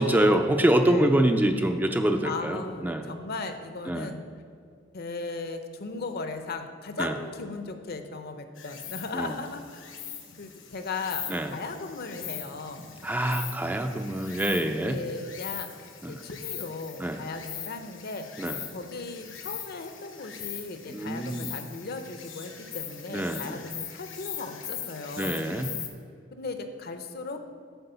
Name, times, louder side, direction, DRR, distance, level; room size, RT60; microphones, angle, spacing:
voice 1, 0.0-3.1 3.9-4.1 7.0-7.1 9.1-9.3 11.3-11.5 13.0-15.0 16.0-16.2 17.0-17.2 18.4-18.6 20.9-21.5 23.1-23.6 25.2-25.7, right 1 dB, 10° right, 6 dB, 0.4 m, -25 dB
voice 2, 0.8-1.1 2.2-4.2 4.9-10.1 10.4-11.2 11.5-12.9 14.8-18.4 18.7-25.4 26.3-27.4, left 3 dB, 55° left, 8 dB, 0.7 m, -37 dB
Insect, 8.6-25.9, left 9 dB, 75° left, 1.0 m, -41 dB
8.0 x 4.6 x 6.8 m, 2.2 s
head